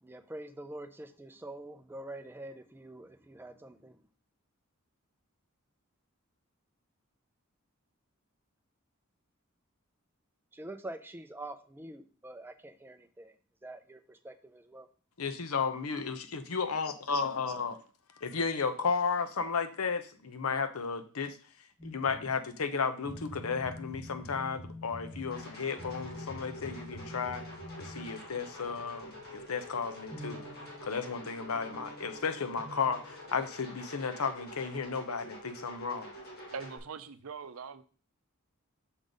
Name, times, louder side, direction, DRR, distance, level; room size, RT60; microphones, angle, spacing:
voice 1, 0.0-4.0 10.5-13.3 13.6-14.9, right 1 dB, 10° right, 8 dB, 0.4 m, -45 dB
voice 2, 15.2-17.8 18.2-21.4 21.8-27.4 27.8-30.4 30.8-36.1, left 5 dB, 85° left, 9 dB, 0.7 m, -33 dB
sound 1, 21.8-22.6 23.0-28.8 30.1-33.3, left 1 dB, 5° left, 1.9 m, -47 dB
sound 2, 25.3-36.8, equal, 45° left, 2.0 m, -47 dB
voice 3, 36.5-37.8, right 5 dB, 75° right, 12 dB, 0.6 m, -42 dB
6.3 x 3.9 x 5.1 m, 0.39 s
head